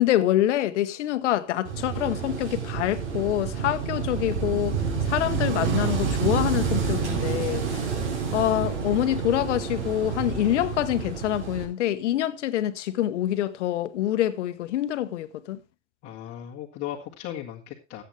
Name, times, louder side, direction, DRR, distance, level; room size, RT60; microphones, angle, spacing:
voice 1, 0.0-7.9 8.3-15.6, left 13 dB, 80° left, 1.2 m, -26 dB
Wind / Waves surf, 1.6-11.6, right 6 dB, 85° right, 4.8 m, -28 dB
voice 2, 16.0-18.0, left 11 dB, 45° left, 1.9 m, -37 dB
15.5 x 8.3 x 3.3 m
supercardioid pair, 120°, 35 cm